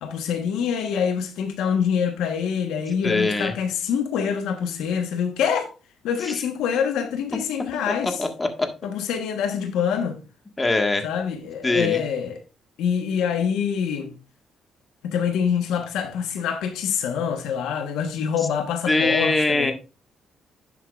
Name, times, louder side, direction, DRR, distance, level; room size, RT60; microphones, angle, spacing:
voice 1, 0.0-5.7 6.0-8.2 8.8-10.2 11.0-12.4 12.8-14.1 15.0-19.7, left 7 dB, 90° left, 1.2 m, -25 dB
voice 2, 3.0-3.5 8.0-8.7 10.6-11.1 11.6-12.0 18.9-19.7, left 2 dB, 20° left, 1.6 m, -22 dB
11.0 x 7.3 x 2.4 m
cardioid pair, 90°, 0 cm